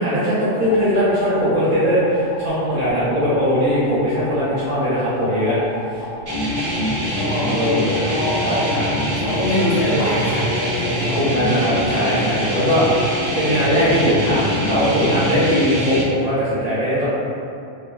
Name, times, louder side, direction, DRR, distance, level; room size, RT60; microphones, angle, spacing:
voice 1, 0.0-5.6 5.9-6.0 7.4-8.1 8.4-8.5 11.2-12.9 13.4-17.1, equal, 45° right, -11 dB, 0.6 m, -20 dB
sound 1, 0.6-15.2, left 1 dB, 45° left, 0.9 m, -35 dB
sound 2, 6.3-16.0, equal, 65° right, 0.9 m, -24 dB
voice 2, 7.1-7.5 8.0-11.2 15.0-15.2, left 1 dB, 85° left, -13 dB, 1.7 m, -24 dB
3.2 x 2.1 x 2.3 m, 2.5 s
omnidirectional pair, 1.1 m